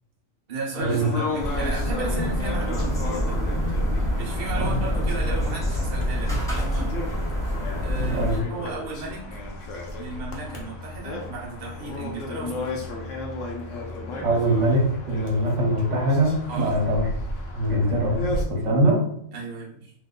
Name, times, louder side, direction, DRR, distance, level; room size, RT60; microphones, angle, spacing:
voice 1, 0.5-3.5 4.1-7.0 7.8-9.2 10.0-12.9 16.5-16.8 19.3-19.9, right 3 dB, 45° right, -4 dB, 0.7 m, -35 dB
sound 1, 0.8-18.4, left 2 dB, 65° left, 1.0 m, -34 dB
sound 2, 1.4-8.4, equal, 5° left, 0.8 m, -26 dB
voice 2, 14.2-17.0 17.5-19.0, right 1 dB, 60° right, -1 dB, 1.1 m, -22 dB
2.9 x 2.0 x 3.6 m, 0.68 s
omnidirectional pair, 1.5 m